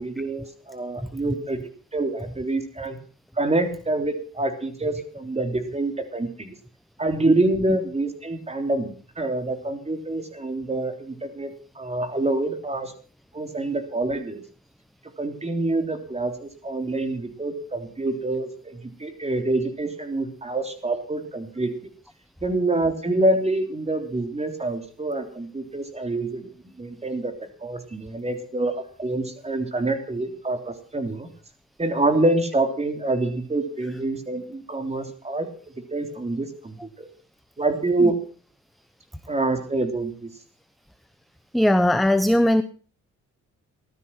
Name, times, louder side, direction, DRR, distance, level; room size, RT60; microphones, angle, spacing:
voice 1, 0.0-1.6 1.9-3.0 3.4-6.5 7.0-11.5 11.7-12.9 13.3-14.4 15.2-21.7 22.4-27.3 27.6-31.3 31.8-35.5 35.7-37.1 37.6-38.2 39.3-40.3, right 2 dB, 20° right, 7 dB, 3.4 m, -26 dB
voice 2, 41.5-42.6, left 1 dB, ahead, 12 dB, 0.9 m, -19 dB
15.5 x 12.5 x 5.8 m, 0.40 s
cardioid pair, 90°, 30 cm